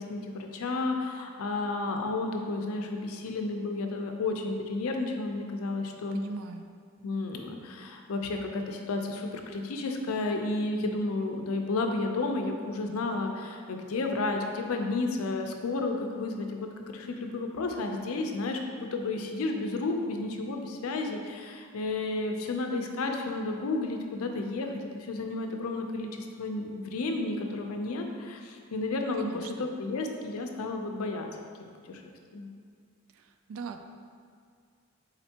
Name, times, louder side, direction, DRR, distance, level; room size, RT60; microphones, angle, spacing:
voice 1, 0.0-6.2 7.0-31.3 31.9-32.0 32.3-32.5, left 3 dB, 85° left, 3 dB, 0.5 m, -32 dB
voice 2, 6.1-6.7 29.2-29.7 33.1-33.8, right 4 dB, 80° right, 7 dB, 0.3 m, -40 dB
4.3 x 3.9 x 2.8 m, 2.2 s
head